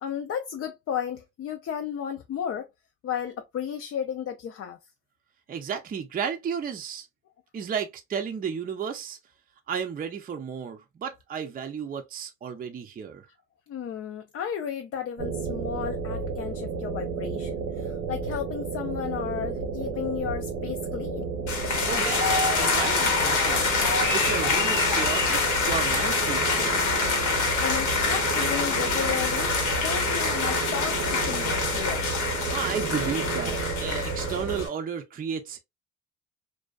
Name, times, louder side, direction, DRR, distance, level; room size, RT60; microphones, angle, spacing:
voice 1, 0.0-2.7 3.0-4.8 13.7-21.3 27.6-29.5 29.8-32.1, left 8 dB, 50° left, 0.4 m, -33 dB
voice 2, 5.5-7.1 7.5-9.2 9.7-13.3 21.8-27.0 32.5-35.6, right 7 dB, 30° right, 0.4 m, -33 dB
sound 1, 15.2-34.7, right 4 dB, 90° right, 0.8 m, -32 dB
sound 2, 21.5-34.7, left 4 dB, 75° left, 0.9 m, -26 dB
2.5 x 2.2 x 2.2 m
cardioid pair, 90°, 30 cm